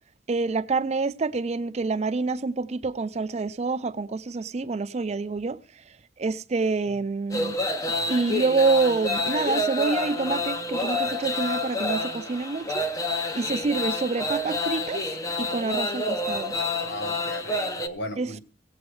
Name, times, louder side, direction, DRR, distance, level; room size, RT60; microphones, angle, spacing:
voice 1, 0.3-5.6 6.2-7.6 7.8-12.9 13.3-15.0 15.4-16.5 18.2-18.4, right 3 dB, 35° right, 0.4 m, -27 dB
sound 1, 7.3-17.9, left 2 dB, 20° left, 0.6 m, -28 dB
voice 2, 16.8-18.4, equal, 65° left, 1.4 m, -36 dB
16.5 x 8.2 x 3.1 m
head